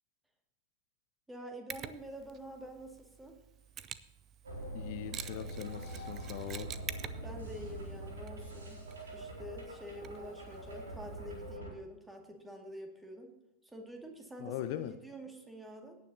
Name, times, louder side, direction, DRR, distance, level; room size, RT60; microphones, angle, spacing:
voice 1, 1.3-3.4 7.2-8.8 9.1-13.3 13.7-16.0, equal, 5° right, 3 dB, 2.2 m, -47 dB
Mechanisms, 1.7-11.6, right 10 dB, 30° right, 0.7 m, -49 dB
sound 1, 4.4-11.7, right 1 dB, 70° right, 3.9 m, -44 dB
voice 2, 4.7-6.7 14.4-15.0, left 12 dB, 45° left, 10 dB, 0.7 m, -41 dB
17.5 x 9.5 x 2.8 m, 0.97 s
figure-of-eight pair, 90°, 0 cm